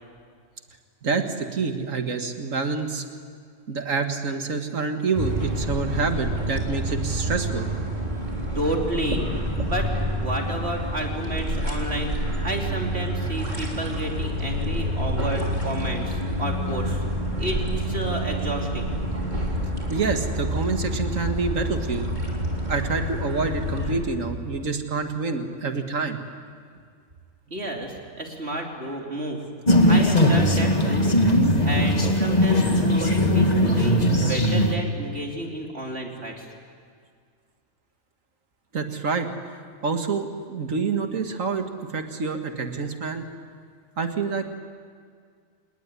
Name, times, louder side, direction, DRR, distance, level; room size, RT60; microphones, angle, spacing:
voice 1, 1.0-3.0 3.7-7.7 19.9-22.1 22.7-26.2 38.7-39.3 39.8-43.3 44.0-44.4, right 4 dB, 90° right, 6 dB, 2.2 m, -27 dB
sound 1, 5.1-23.9, equal, 35° right, 4.0 m, -28 dB
voice 2, 8.6-9.3 9.6-9.9 10.2-17.0 17.4-18.9 27.5-29.5 29.8-31.1 31.6-36.5, right 1 dB, 55° right, 1 dB, 3.3 m, -31 dB
sound 2, 29.7-34.7, left 1 dB, 30° left, 2.1 m, -19 dB
27.5 x 20.0 x 9.8 m, 2.1 s
omnidirectional pair, 1.3 m